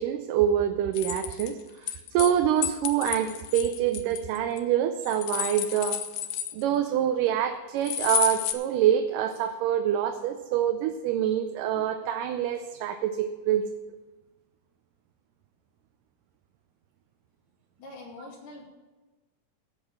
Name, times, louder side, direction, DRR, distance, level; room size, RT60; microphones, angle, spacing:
voice 1, 0.0-6.0 6.5-13.7, right 10 dB, 85° right, 7 dB, 2.2 m, -26 dB
sound 1, 0.9-2.3 2.6-4.6 5.0-6.9 7.8-8.5, left 11 dB, 75° left, 2.0 m, -31 dB
voice 2, 17.8-18.6, left 2 dB, 90° left, -2 dB, 4.1 m, -44 dB
16.0 x 5.4 x 7.2 m, 1.2 s
omnidirectional pair, 3.7 m